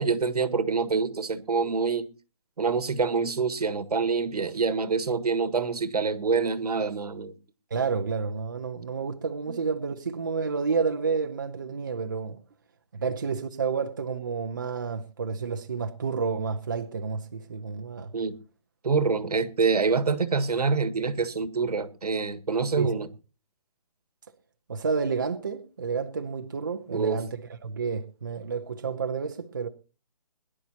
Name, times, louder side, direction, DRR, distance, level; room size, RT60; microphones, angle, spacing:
voice 1, 0.0-2.1 2.6-7.3 9.5-9.6 18.1-18.3 18.8-23.1 26.9-27.2, right 4 dB, 80° right, 1.7 m, -26 dB
voice 2, 7.7-12.4 12.9-18.1 22.8-22.9 24.7-27.3 27.6-29.7, right 5 dB, 30° right, 0.8 m, -30 dB
22.0 x 11.0 x 2.9 m
hypercardioid pair, 180°, 20 cm